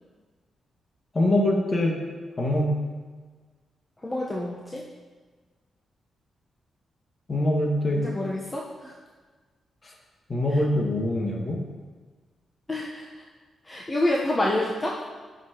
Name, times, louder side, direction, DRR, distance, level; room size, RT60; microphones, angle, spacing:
voice 1, 1.1-2.0 2.4-2.7 7.3-8.0 10.3-11.6, left 1 dB, 40° left, -1 dB, 1.9 m, -23 dB
voice 2, 4.0-4.8 8.0-8.9 12.7-13.1 13.7-15.0, left 1 dB, 25° left, -3 dB, 1.1 m, -27 dB
11.0 x 6.0 x 3.1 m, 1.4 s
supercardioid pair, 55°, 0 cm